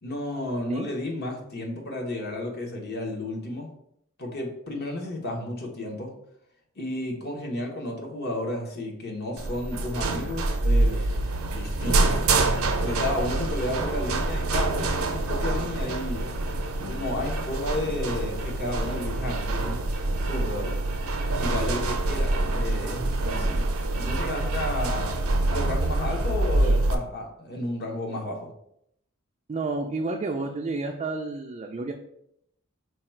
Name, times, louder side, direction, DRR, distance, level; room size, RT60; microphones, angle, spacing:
voice 1, 0.0-3.7 4.2-6.1 6.8-11.1 11.5-12.3 12.8-16.3 16.8-19.8 20.2-20.8 21.4-23.7 24.0-28.5, left 1 dB, 50° left, 0 dB, 1.0 m, -32 dB
sound 1, 9.4-26.9, right 2 dB, 75° right, 0.6 m, -26 dB
sound 2, 10.8-21.6, left 1 dB, 75° left, 1.3 m, -47 dB
voice 2, 29.5-31.9, right 3 dB, 30° right, 2 dB, 0.4 m, -30 dB
4.7 x 2.3 x 4.4 m, 0.73 s
head